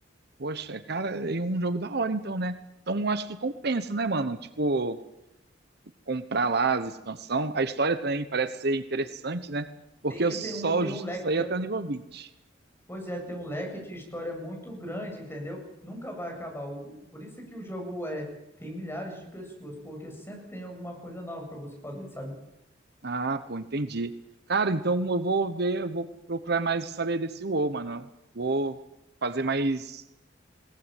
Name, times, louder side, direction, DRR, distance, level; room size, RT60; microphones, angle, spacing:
voice 1, 0.4-2.6 2.9-5.0 6.1-9.7 10.0-12.3 23.0-24.1 24.5-28.1 28.3-28.8 29.2-30.0, right 3 dB, 60° right, 11 dB, 1.1 m, -28 dB
voice 2, 10.1-11.7 12.9-18.3 18.6-22.3, equal, 15° left, 1 dB, 7.9 m, -37 dB
21.5 x 19.0 x 9.2 m, 0.87 s
head